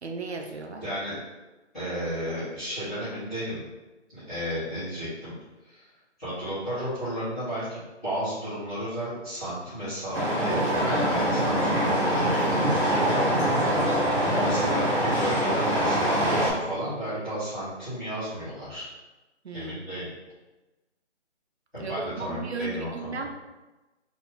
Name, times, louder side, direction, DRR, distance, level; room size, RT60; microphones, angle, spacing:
voice 1, 0.0-0.8 19.4-19.9 21.8-23.3, right 3 dB, 65° right, 3 dB, 0.6 m, -35 dB
voice 2, 0.8-1.1 1.7-3.6 4.1-5.3 5.7-5.8 6.2-13.8 14.2-18.9 19.5-20.1 21.7-23.1, equal, ahead, -28 dB, 1.0 m, -33 dB
sound 1, 10.1-16.5, right 1 dB, 15° right, 1.2 m, -24 dB
4.1 x 2.7 x 4.1 m, 1.1 s
figure-of-eight pair, 170°, 35 cm